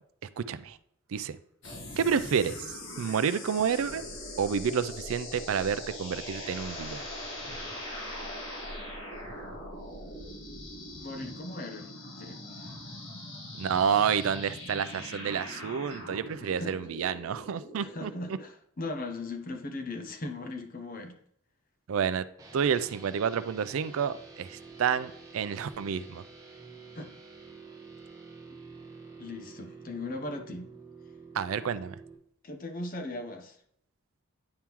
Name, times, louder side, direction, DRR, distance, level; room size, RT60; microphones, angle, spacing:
voice 1, 0.4-0.8 1.1-1.4 2.0-2.7 3.0-4.0 4.4-7.1 13.6-18.1 21.9-22.2 22.5-26.2 31.3-32.0, right 7 dB, 75° right, 14 dB, 0.4 m, -29 dB
Speech synthesizer, 0.5-0.7 2.2-2.5 3.7-4.2 5.5-6.0 7.3-7.8 8.2-8.3 9.1-9.6 10.0-10.3 11.0-11.4 12.6-12.9 14.2-14.6 15.0-15.2 15.8-16.3 16.8-16.9, right 1 dB, 50° right, 1.1 m, -51 dB
sound 1, 1.6-18.4, left 1 dB, 65° left, 1.5 m, -41 dB
voice 2, 11.0-11.9 12.2-12.4 16.4-16.8 17.8-21.2 26.9-27.1 29.2-30.7 32.4-33.6, left 2 dB, 40° left, 5 dB, 0.7 m, -38 dB
sound 2, 22.4-32.2, right 4 dB, 15° right, 0.8 m, -49 dB
9.6 x 3.6 x 2.9 m, 0.71 s
head